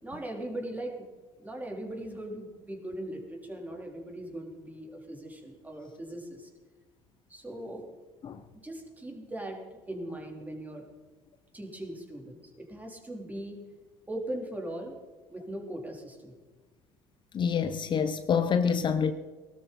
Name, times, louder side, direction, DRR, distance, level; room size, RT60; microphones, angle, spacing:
voice 1, 0.0-1.0 1.4-6.5 7.3-7.8 8.5-10.8 11.5-13.6 14.1-15.0 15.3-16.3, right 1 dB, 15° right, 3.7 m, -39 dB
voice 2, 17.3-19.1, left 6 dB, 40° left, 0.8 m, -26 dB
18.5 x 12.5 x 4.2 m
hypercardioid pair, 70°, 12 cm